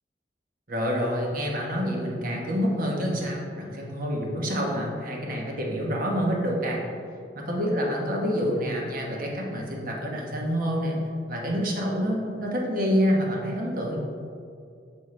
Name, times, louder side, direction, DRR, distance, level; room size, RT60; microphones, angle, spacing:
voice 1, 0.7-6.8 7.3-11.0 11.3-14.0, equal, 50° right, -1 dB, 1.1 m, -27 dB
6.3 x 5.5 x 3.2 m, 2.4 s
head